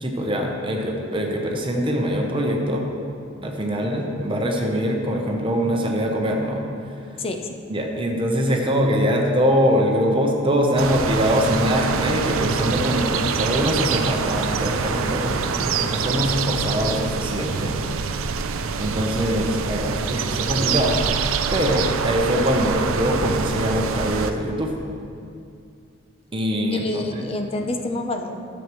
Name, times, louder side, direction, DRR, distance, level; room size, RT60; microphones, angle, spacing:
voice 1, 0.0-2.9 3.4-7.0 7.7-17.8 18.8-21.0 21.5-24.7 26.3-27.0, equal, 25° right, 1 dB, 0.9 m, -23 dB
voice 2, 7.2-7.6 26.7-28.4, left 2 dB, 30° left, 4 dB, 0.6 m, -28 dB
sound 1, 10.8-24.3, right 6 dB, 80° right, 0.4 m, -25 dB
12.5 x 7.3 x 3.1 m, 2.4 s
head